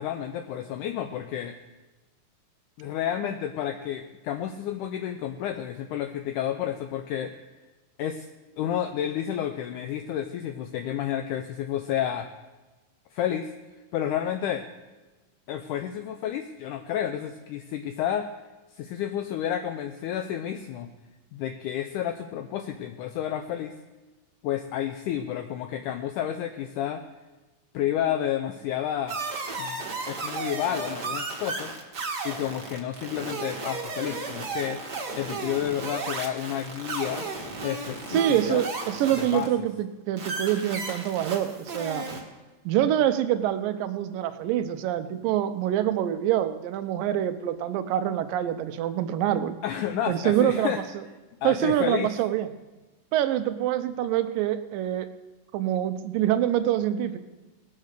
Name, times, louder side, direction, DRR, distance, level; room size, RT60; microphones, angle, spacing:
voice 1, 0.0-1.6 2.8-7.3 8.0-8.3 8.6-12.4 13.1-13.5 13.9-14.7 15.5-18.3 18.7-20.9 21.3-23.7 24.4-27.0 27.7-29.2 29.6-31.7 32.2-34.8 35.2-37.3 37.6-38.6 39.2-39.5 49.6-50.8 51.4-52.1, left 10 dB, 80° left, 6 dB, 2.0 m, -30 dB
sound 1, 29.1-39.5 40.2-42.2, right 3 dB, 40° right, 1.6 m, -34 dB
voice 2, 38.1-42.1 42.7-49.5 50.1-51.0 51.4-52.5 53.1-55.1 55.5-57.2, right 11 dB, 85° right, 10 dB, 2.4 m, -25 dB
19.0 x 6.6 x 6.5 m, 1.2 s
omnidirectional pair, 3.9 m